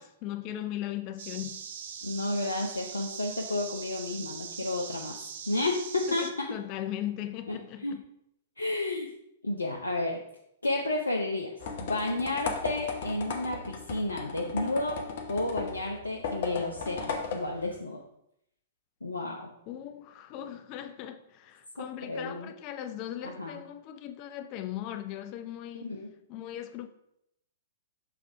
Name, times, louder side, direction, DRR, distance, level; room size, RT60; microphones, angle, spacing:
voice 1, 0.0-1.7 6.1-8.0 19.7-26.0 26.3-26.9, left 12 dB, 40° left, 0.5 m, -38 dB
sound 1, 1.2-6.3, right 7 dB, 60° right, 0.6 m, -41 dB
voice 2, 2.0-5.2 5.5-6.5 7.5-7.9 8.6-9.1 9.4-10.2 10.6-11.5 11.8-15.0 15.3-18.0 19.0-19.5 21.8-22.5 23.4-23.6 25.8-26.1, left 2 dB, 85° left, 0.6 m, -31 dB
sound 2, 11.6-17.8, left 5 dB, 55° left, 0.9 m, -36 dB
6.2 x 3.3 x 4.8 m
figure-of-eight pair, 110°, 0 cm